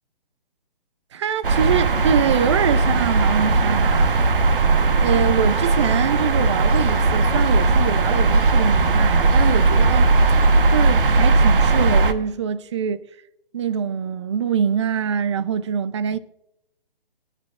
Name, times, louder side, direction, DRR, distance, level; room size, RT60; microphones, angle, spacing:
voice 1, 1.1-4.1 5.0-10.1 10.7-13.0 13.5-16.2, right 8 dB, 30° right, 0.6 m, -24 dB
sound 1, 1.4-12.1, right 3 dB, 65° right, 1.2 m, -18 dB
22.5 x 10.0 x 2.5 m
hypercardioid pair, 150°, 29 cm